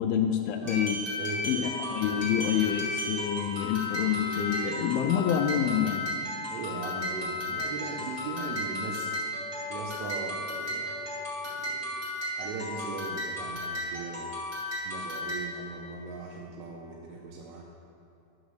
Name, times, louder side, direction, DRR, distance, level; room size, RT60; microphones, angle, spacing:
voice 1, 0.0-1.1 1.4-6.1, left 9 dB, 90° left, 4 dB, 2.1 m, -27 dB
sound 1, 0.6-15.7, left 1 dB, 20° right, 1.5 m, -34 dB
Bowed string instrument, 1.2-4.9, right 5 dB, 30° left, 1.3 m, -43 dB
voice 2, 6.5-9.1 9.7-11.2 11.5-14.4 14.8-17.6, right 4 dB, 85° right, -2 dB, 2.7 m, -39 dB
11.0 x 4.0 x 6.5 m, 2.7 s
omnidirectional pair, 4.8 m